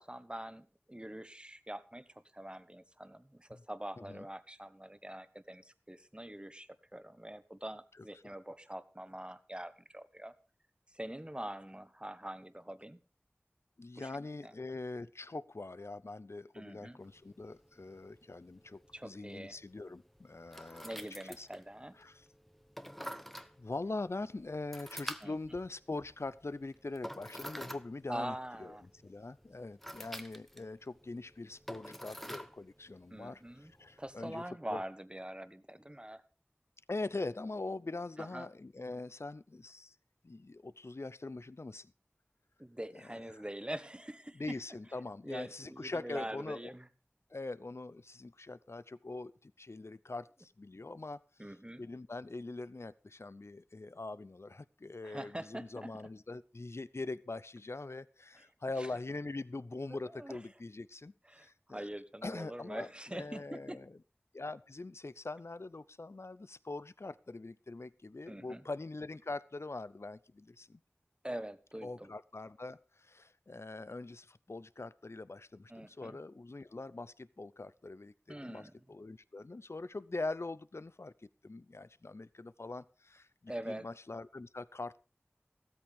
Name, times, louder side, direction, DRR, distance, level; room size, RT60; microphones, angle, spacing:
voice 1, 0.0-2.1 2.3-10.3 10.9-13.0 14.0-14.1 14.4-14.5 16.5-17.0 18.9-19.6 20.8-22.0 25.2-25.4 28.1-28.9 29.9-30.1 33.1-33.7 34.0-36.2 38.2-38.5 42.6-44.6 45.2-46.9 51.4-51.8 55.0-56.1 58.8-58.9 60.0-60.4 61.3-63.8 68.3-68.6 71.2-72.1 75.7-76.2 78.3-78.7 83.5-83.9, right 1 dB, 20° right, 12 dB, 1.4 m, -44 dB
voice 2, 13.8-21.1 21.4-21.5 22.0-22.3 23.6-28.3 28.6-33.4 33.8-34.4 34.7-34.8 36.9-40.0 40.2-41.9 42.9-43.4 44.3-46.7 47.3-51.2 51.8-61.9 62.2-64.0 64.3-70.8 71.8-81.1 81.4-85.0, left 2 dB, 80° left, 17 dB, 0.6 m, -43 dB
sound 1, 17.0-34.5, equal, 5° left, 1.1 m, -49 dB
16.0 x 13.5 x 3.6 m, 0.33 s
wide cardioid pair, 40°, 4 cm